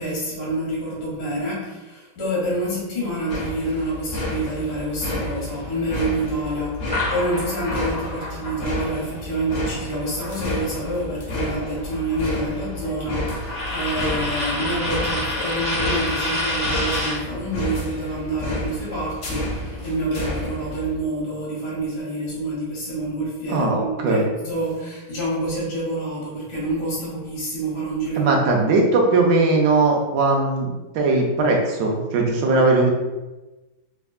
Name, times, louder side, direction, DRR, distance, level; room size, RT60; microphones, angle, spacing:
voice 1, 0.0-28.3, right 1 dB, 75° left, -6 dB, 1.6 m, -27 dB
sound 1, 3.3-21.0, left 1 dB, 55° left, 1.0 m, -31 dB
sound 2, 6.9-11.0 11.3-17.3, left 1 dB, 5° right, 0.7 m, -29 dB
voice 2, 23.5-24.3 28.2-32.9, right 3 dB, 70° right, 0 dB, 1.2 m, -19 dB
3.5 x 3.3 x 2.4 m, 1.1 s
omnidirectional pair, 1.8 m